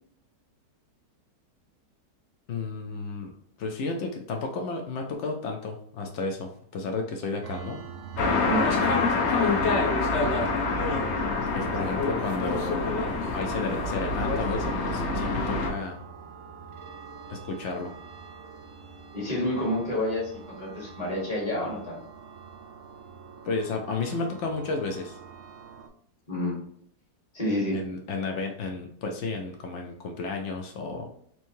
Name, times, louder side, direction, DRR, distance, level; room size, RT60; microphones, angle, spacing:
voice 1, 2.5-7.8 8.2-8.8 11.5-16.0 17.3-17.9 23.4-25.2 27.7-31.1, left 3 dB, 90° left, 2 dB, 0.6 m, -32 dB
sound 1, 7.4-25.9, right 7 dB, 70° right, 0.7 m, -43 dB
sound 2, 8.2-15.7, left 3 dB, 55° left, 0.8 m, -26 dB
voice 2, 19.1-22.0 26.3-26.6 27.3-27.8, left 1 dB, 25° left, -3 dB, 1.2 m, -29 dB
4.5 x 3.1 x 2.6 m, 0.66 s
omnidirectional pair, 1.9 m